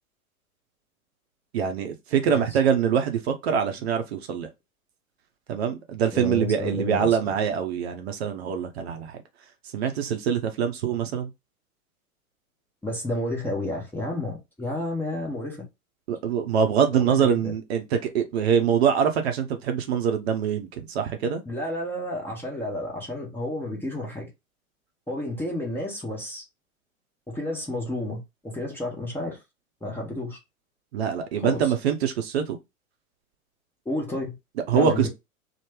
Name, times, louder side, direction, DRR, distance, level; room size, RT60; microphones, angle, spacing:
voice 1, 1.5-4.5 5.5-9.2 9.7-11.3 16.1-21.4 30.9-32.6 34.7-35.1, right 7 dB, 45° right, 0.7 m, -24 dB
voice 2, 6.1-7.3 12.8-15.6 16.9-17.5 21.5-24.3 25.1-26.4 27.3-29.4 29.8-30.4 31.4-31.7 33.8-34.3 34.7-35.1, left 1 dB, 5° left, 0.8 m, -31 dB
3.1 x 2.1 x 3.3 m
figure-of-eight pair, 100°, 43 cm